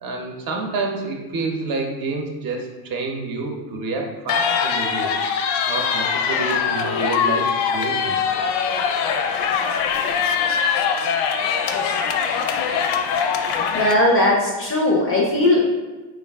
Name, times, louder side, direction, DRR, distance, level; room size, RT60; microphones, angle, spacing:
voice 1, 0.0-8.4, right 3 dB, 45° right, 1 dB, 0.6 m, -29 dB
sound 1, 4.3-13.9, left 6 dB, 80° left, 0.6 m, -22 dB
voice 2, 13.7-15.6, left 1 dB, 30° left, -2 dB, 0.4 m, -18 dB
4.6 x 2.4 x 3.4 m, 1.3 s
cardioid pair, 170°, 47 cm